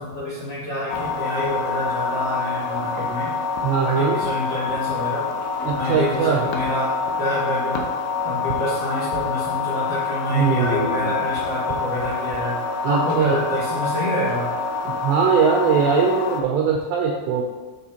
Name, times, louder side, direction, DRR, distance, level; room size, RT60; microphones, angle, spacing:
voice 1, 0.0-3.3 3.8-5.2 5.7-6.9 7.2-7.9 8.2-12.6 12.8-14.5, equal, 55° left, -9 dB, 2.8 m, -27 dB
sound 1, 0.9-16.4, left 5 dB, 80° left, 2.8 m, -26 dB
voice 2, 3.6-4.2 5.7-6.4 10.3-11.1 12.8-13.4 14.9-17.4, right 6 dB, 90° right, 1 dB, 2.4 m, -21 dB
12.0 x 5.0 x 2.8 m, 1.3 s
omnidirectional pair, 5.7 m